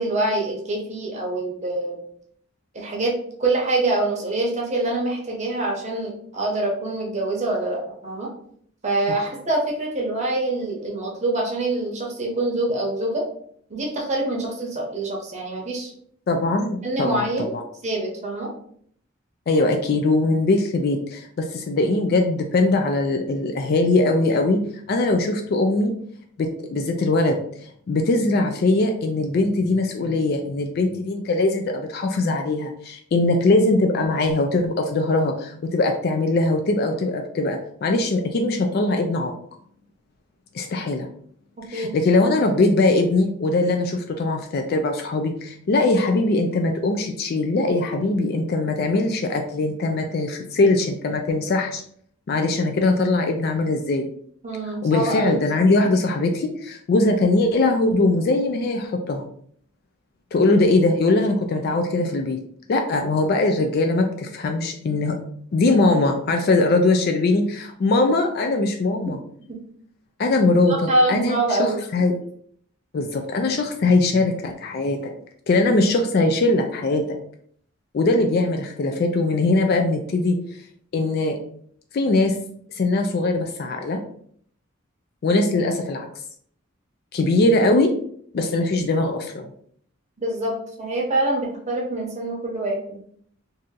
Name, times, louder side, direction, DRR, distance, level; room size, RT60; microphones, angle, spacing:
voice 1, 0.0-2.0 2.7-8.3 8.8-13.2 13.7-15.9 16.8-17.5 17.8-18.5 41.7-42.0 54.4-55.4 69.0-69.2 69.5-69.6 70.7-71.8 90.2-93.0, right 2 dB, 35° right, -1 dB, 0.7 m, -25 dB
voice 2, 16.3-17.6 19.5-24.6 24.9-25.9 26.4-39.3 40.5-41.1 41.7-51.8 52.3-54.1 54.8-59.3 60.3-62.4 62.7-65.2 65.5-69.2 70.2-72.2 72.9-75.1 75.5-77.2 77.9-80.4 80.9-81.4 81.9-82.3 82.7-84.0 85.2-86.1 87.1-87.9 88.3-89.5, left 2 dB, 50° left, 5 dB, 0.3 m, -21 dB
2.8 x 2.5 x 3.7 m, 0.63 s
head